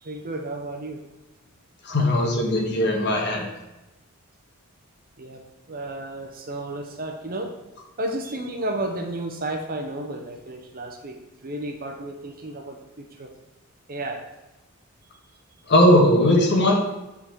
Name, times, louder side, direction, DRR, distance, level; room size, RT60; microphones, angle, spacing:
voice 1, 0.0-1.0 5.2-7.5 8.0-11.1 11.4-13.3 13.9-14.2, right 1 dB, 45° right, 4 dB, 0.9 m, -32 dB
voice 2, 1.8-3.4 15.7-16.7, left 1 dB, 55° left, 0 dB, 1.5 m, -18 dB
8.0 x 4.0 x 4.7 m, 1.0 s
head